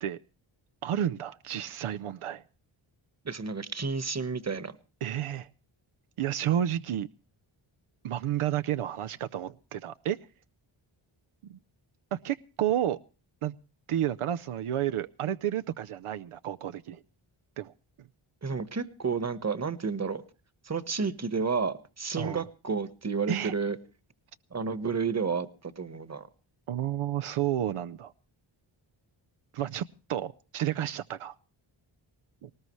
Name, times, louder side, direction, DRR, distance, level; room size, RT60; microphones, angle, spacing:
voice 1, 0.8-2.4 5.0-5.5 6.2-7.1 8.0-10.2 11.5-11.6 12.1-13.0 13.4-13.6 13.9-17.0 17.6-18.1 22.2-22.5 23.3-23.5 26.7-28.1 29.5-31.4 32.4-32.5, right 11 dB, 80° right, 0.7 m, -31 dB
voice 2, 3.2-4.8 18.4-20.2 20.6-23.8 24.5-26.3, right 5 dB, 30° right, 1.4 m, -31 dB
19.0 x 19.0 x 3.1 m
cardioid pair, 70°, 50 cm